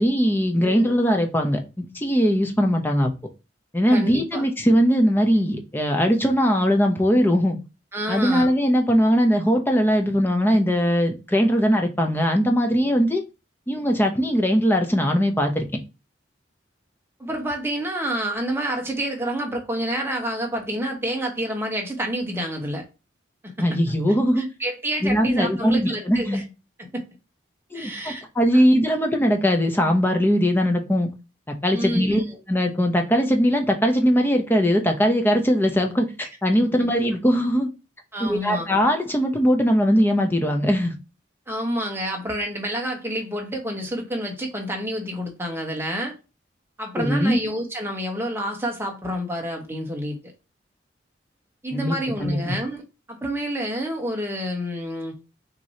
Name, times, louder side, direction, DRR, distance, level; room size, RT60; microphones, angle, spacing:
voice 1, 0.0-3.1 3.7-7.6 8.1-13.2 13.7-15.6 23.6-24.5 25.0-26.4 27.7-31.1 31.6-32.2 32.5-37.7 38.2-40.9 47.0-47.4 51.7-52.5, equal, 10° left, 0.7 m, -20 dB
voice 2, 0.6-1.0 3.9-4.4 7.9-8.5 17.2-22.8 23.4-24.0 24.4-26.4 26.8-27.0 27.7-28.2 28.5-28.6 31.7-32.4 38.1-38.7 41.5-46.2 46.8-50.2 51.6-52.8 53.1-55.1, equal, 15° right, 1.2 m, -28 dB
6.1 x 3.0 x 2.8 m
head